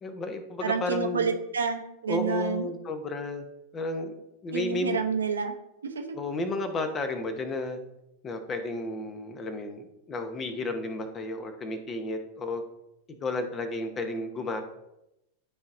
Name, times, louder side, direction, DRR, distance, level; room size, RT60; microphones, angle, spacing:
voice 1, 0.0-1.3 2.1-3.4 3.7-4.1 4.4-5.1 6.1-7.8 8.2-12.6 13.2-14.6, left 2 dB, 25° left, 8 dB, 0.9 m, -32 dB
voice 2, 0.6-2.7 4.5-5.5 5.8-6.2, right 5 dB, 70° right, 5 dB, 0.8 m, -29 dB
12.0 x 4.1 x 2.6 m, 0.86 s
figure-of-eight pair, 90°, 0 cm